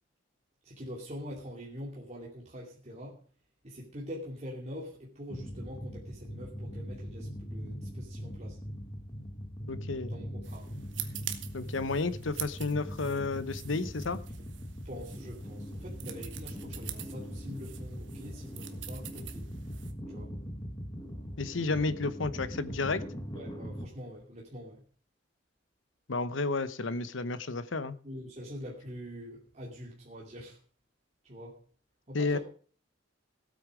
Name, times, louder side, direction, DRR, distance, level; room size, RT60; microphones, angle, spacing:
voice 1, 0.6-3.2 3.6-8.6 10.1-10.7 14.8-19.5 20.1-20.4 23.3-24.8 28.0-30.6 31.2-31.6 32.1-32.4, equal, 35° right, -3 dB, 2.6 m, -44 dB
sound 1, 5.3-23.9, equal, 20° left, 1.6 m, -41 dB
voice 2, 9.7-10.1 11.5-14.2 21.4-23.0 26.1-28.0 32.1-32.4, left 3 dB, 85° left, 14 dB, 0.9 m, -31 dB
sound 2, 10.4-19.9, right 11 dB, 70° right, 1.3 m, -45 dB
16.0 x 8.7 x 4.9 m, 0.43 s
head